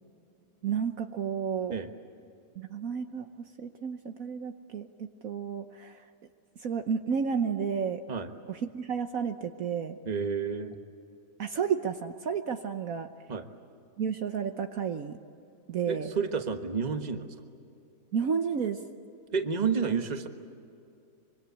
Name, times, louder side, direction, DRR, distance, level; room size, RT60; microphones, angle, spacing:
voice 1, 0.6-1.7 2.5-6.1 6.6-8.0 8.5-10.0 11.4-13.1 14.0-15.2 15.7-16.1 18.1-18.8, right 7 dB, 60° right, 7 dB, 1.3 m, -32 dB
voice 2, 10.0-10.8 13.3-13.5 15.9-17.3 19.3-20.3, right 5 dB, 30° right, 7 dB, 1.4 m, -30 dB
25.5 x 24.0 x 8.2 m, 2.6 s
omnidirectional pair, 1.7 m